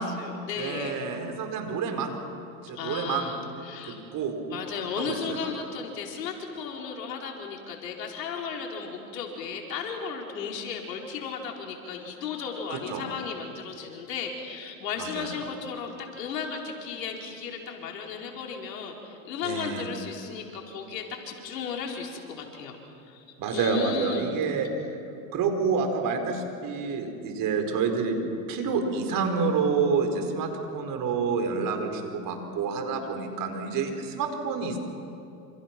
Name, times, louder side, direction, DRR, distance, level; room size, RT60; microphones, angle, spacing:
voice 1, 0.0-1.0 2.7-4.0 4.5-22.8 23.1-24.3, left 6 dB, 80° left, 0 dB, 4.7 m, -35 dB
voice 2, 0.6-2.1 2.6-3.3 3.9-4.3 5.0-5.4 12.7-13.0 15.0-15.3 19.4-19.9 23.4-24.7 25.3-28.2 28.5-34.8, right 5 dB, 40° right, 5 dB, 4.8 m, -28 dB
28.0 x 27.5 x 6.1 m, 2.6 s
hypercardioid pair, 110°, 48 cm